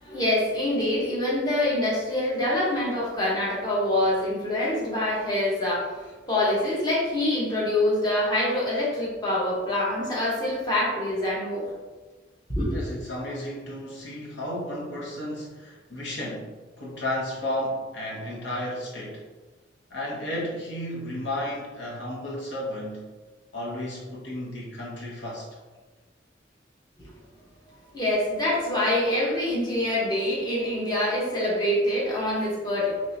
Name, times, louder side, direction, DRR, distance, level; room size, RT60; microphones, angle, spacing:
voice 1, 0.0-11.7 12.5-12.8 27.0-27.1 27.9-33.0, left 1 dB, 20° left, -6 dB, 1.0 m, -25 dB
voice 2, 12.7-19.2 19.9-23.1 23.5-25.5, left 1 dB, 80° left, -4 dB, 0.9 m, -33 dB
3.6 x 3.1 x 2.7 m, 1.3 s
head